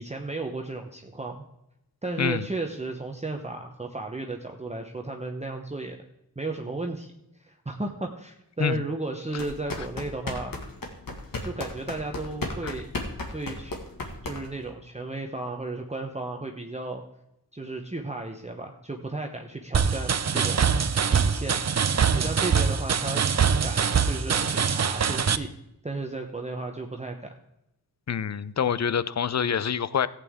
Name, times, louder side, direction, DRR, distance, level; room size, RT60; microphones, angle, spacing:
voice 1, 0.0-1.4 2.0-6.0 6.4-7.1 7.4-10.5 11.4-12.9 13.3-13.8 14.2-17.0 17.5-20.7 21.1-21.6 22.1-23.2 23.6-25.5 25.8-27.4, right 2 dB, 20° right, 2 dB, 0.9 m, -34 dB
sound 1, 9.3-14.7, left 2 dB, 65° left, 1.8 m, -35 dB
sound 2, 19.7-25.4, right 6 dB, 45° right, 0.6 m, -23 dB
voice 2, 28.1-30.1, left 7 dB, 45° left, 17 dB, 0.5 m, -26 dB
14.5 x 8.4 x 3.6 m, 0.84 s
wide cardioid pair, 75°, 37 cm